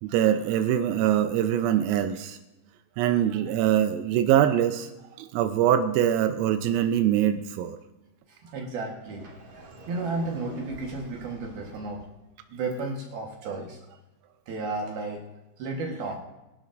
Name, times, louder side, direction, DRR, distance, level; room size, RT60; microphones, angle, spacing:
voice 1, 0.0-2.4 3.0-4.9 5.2-7.8, right 10 dB, 85° right, 8 dB, 3.4 m, -23 dB
voice 2, 8.3-9.3 9.9-12.1 12.5-13.8 14.5-15.3 15.6-16.2, right 3 dB, 70° right, 1 dB, 2.4 m, -33 dB
Sliding door, 9.0-12.0, right 2 dB, 40° right, 3.6 m, -46 dB
25.5 x 11.5 x 2.5 m, 1.0 s
omnidirectional pair, 6.0 m